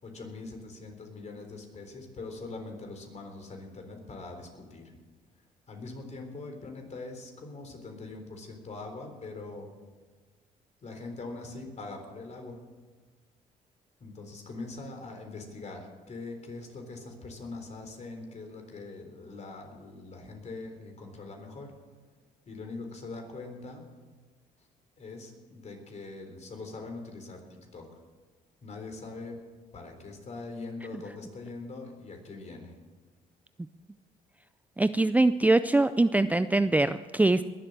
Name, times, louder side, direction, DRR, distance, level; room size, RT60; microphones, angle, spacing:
voice 1, 0.0-4.9 5.7-9.7 10.8-12.6 14.0-21.7 22.5-23.8 25.0-27.9 28.6-29.4 29.7-32.7, left 3 dB, 45° left, 3 dB, 3.9 m, -42 dB
voice 2, 34.8-37.4, right 2 dB, 10° right, 13 dB, 0.4 m, -23 dB
21.0 x 7.7 x 6.6 m, 1.4 s
supercardioid pair, 70°, 16 cm